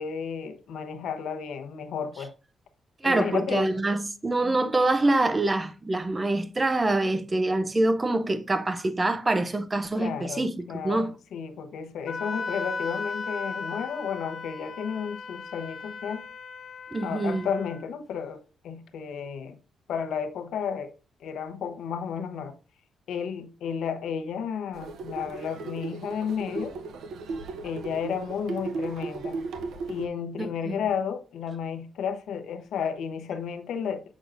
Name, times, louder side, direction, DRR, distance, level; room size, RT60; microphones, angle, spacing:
voice 1, 0.0-2.3 3.0-3.6 4.4-4.7 10.0-16.3 17.0-19.6 19.9-20.9 21.2-22.5 23.1-26.7 27.6-29.4 29.9-34.0, left 7 dB, 75° left, 0.7 m, -32 dB
voice 2, 3.0-11.1 16.9-17.4 30.4-30.8, right 2 dB, 15° right, 0.5 m, -25 dB
Wind instrument woodwind instrument, 12.1-17.8, left 4 dB, 45° left, 0.6 m, -36 dB
sound 1, 24.7-30.1, right 4 dB, 70° right, 0.7 m, -36 dB
6.6 x 6.1 x 2.4 m
wide cardioid pair, 175°, 0 cm